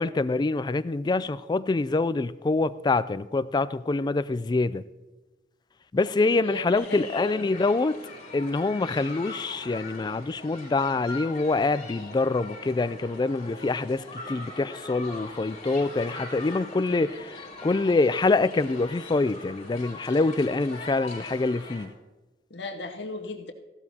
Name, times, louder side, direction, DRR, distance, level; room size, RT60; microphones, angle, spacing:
voice 1, 0.0-4.8 5.9-8.0 8.3-21.9, left 3 dB, 25° left, 15 dB, 0.3 m, -25 dB
voice 2, 6.4-7.4 22.5-23.5, left 2 dB, 75° left, 5 dB, 1.0 m, -36 dB
sound 1, 6.7-21.9, left 2 dB, 45° left, 3.7 m, -42 dB
15.5 x 12.0 x 2.8 m, 1.1 s
head